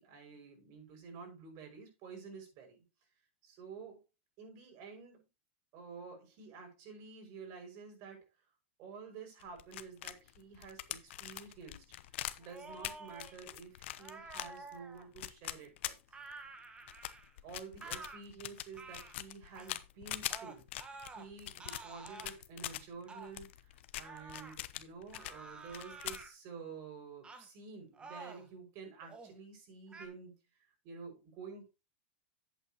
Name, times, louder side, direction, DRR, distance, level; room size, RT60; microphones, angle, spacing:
voice 1, 0.0-2.8 3.4-4.0 4.4-5.3 5.7-8.3 8.8-11.8 12.4-15.9 17.4-20.7 21.1-30.3 30.8-31.6, right 5 dB, 45° right, 2 dB, 6.0 m, -50 dB
sound 1, 9.4-16.5 16.9-22.8 23.3-25.4 25.7-26.3, left 14 dB, 65° left, 0.8 m, -43 dB
sound 2, 12.4-13.3 14.0-15.1 16.1-17.4 17.8-18.2 18.7-19.2 19.6-19.7 20.3-21.3 21.6-22.3 23.1-23.3 24.0-24.6 25.1-26.3 27.2-27.5 27.9-28.5 29.0-29.4 29.9-30.1, right 3 dB, 15° right, 1.6 m, -50 dB
10.5 x 8.5 x 3.0 m, 0.26 s
supercardioid pair, 130°, 7 cm